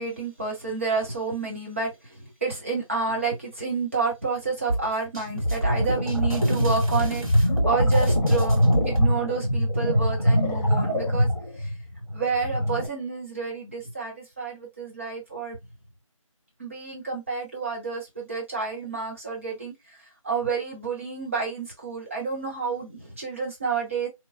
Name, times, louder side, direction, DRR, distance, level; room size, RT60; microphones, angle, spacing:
voice 1, 0.0-11.3 11.6-11.7 12.1-15.6 16.6-24.1, right 4 dB, 25° right, 0.9 m, -30 dB
sound 1, 4.7-9.1, right 1 dB, 85° right, 1.9 m, -27 dB
sound 2, 5.2-12.9, equal, ahead, 1.0 m, -23 dB
3.0 x 2.3 x 2.4 m
figure-of-eight pair, 170°, 17 cm